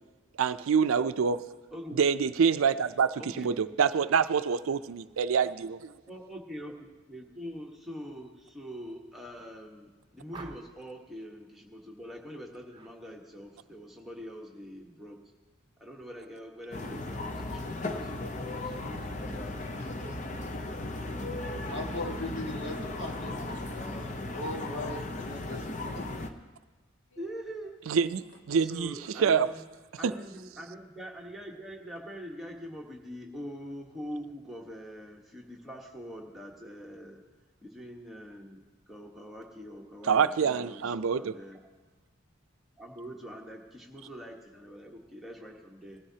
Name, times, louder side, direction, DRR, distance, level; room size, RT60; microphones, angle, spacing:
voice 1, 0.4-1.4 2.0-5.9 27.9-28.9 29.2-29.5 40.1-41.3, right 6 dB, 85° right, 13 dB, 0.4 m, -26 dB
voice 2, 3.2-3.5 6.1-15.2 15.8-20.4 27.2-27.8 28.6-29.6 30.0-37.2 37.6-41.7 42.8-46.0, equal, ahead, -2 dB, 1.2 m, -44 dB
sound 1, 10.3-10.9 12.7-13.0 13.3-13.7, right 3 dB, 25° right, 0.8 m, -47 dB
sound 2, 16.7-26.3, left 2 dB, 35° left, 0.7 m, -36 dB
voice 3, 19.2-21.0 21.7-26.1 27.1-27.2, left 1 dB, 65° left, 0 dB, 1.7 m, -41 dB
19.5 x 13.0 x 2.8 m, 1.3 s
head